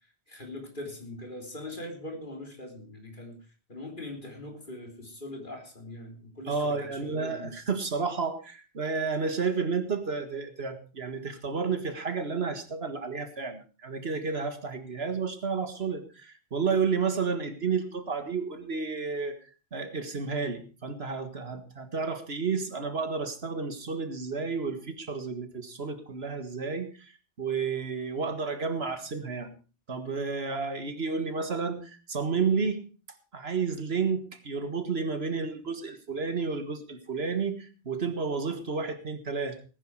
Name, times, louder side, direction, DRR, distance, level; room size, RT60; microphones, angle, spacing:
voice 1, 0.3-3.4 3.7-7.5, left 1 dB, 50° left, 2 dB, 3.7 m, -41 dB
voice 2, 6.5-19.4 19.7-27.1 27.4-29.6 29.9-32.8 33.3-39.6, right 5 dB, 65° right, 8 dB, 1.9 m, -31 dB
19.0 x 10.0 x 4.7 m, 0.35 s
omnidirectional pair, 1.1 m